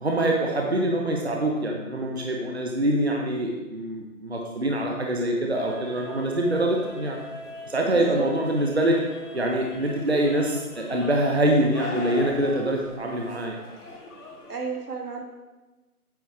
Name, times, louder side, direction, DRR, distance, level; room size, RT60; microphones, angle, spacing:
voice 1, 0.0-7.2 7.7-9.0 9.3-13.6, right 1 dB, 45° right, 0 dB, 0.9 m, -24 dB
sound 1, 5.5-14.6, left 2 dB, 90° left, 1.6 m, -40 dB
voice 2, 7.8-8.3 14.5-15.2, right 5 dB, 90° right, 1 dB, 1.9 m, -33 dB
9.1 x 6.0 x 3.5 m, 1.1 s
figure-of-eight pair, 180°, 45 cm